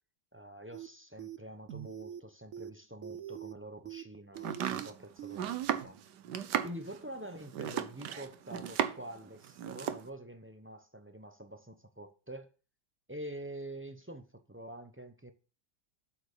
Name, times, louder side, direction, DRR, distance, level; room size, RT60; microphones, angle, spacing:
voice 1, 0.3-6.0 6.6-12.5 13.1-15.3, right 1 dB, 15° right, 0.4 m, -46 dB
sound 1, 0.7-0.9 1.2-1.4 1.7-2.2 2.5-2.7 3.0-3.5 3.9-4.0 4.4-4.9 5.2-5.4 5.7-5.8, right 11 dB, 65° right, 0.9 m, -43 dB
Domestic sounds home sounds, 4.4-9.2 9.4-10.1, right 10 dB, 80° right, 1.4 m, -35 dB
8.0 x 6.0 x 6.6 m
omnidirectional pair, 1.8 m